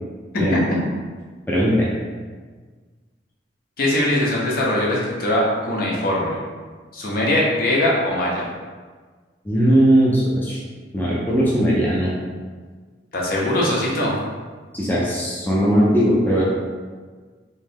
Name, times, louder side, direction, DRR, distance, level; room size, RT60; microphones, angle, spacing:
voice 1, 1.5-1.9 9.4-10.6 10.9-12.1 14.7-16.4, equal, 10° left, -6 dB, 0.5 m, -18 dB
voice 2, 3.8-6.4 6.9-8.5 13.1-14.1, left 1 dB, 55° left, -4 dB, 0.9 m, -21 dB
3.2 x 2.8 x 3.5 m, 1.5 s
head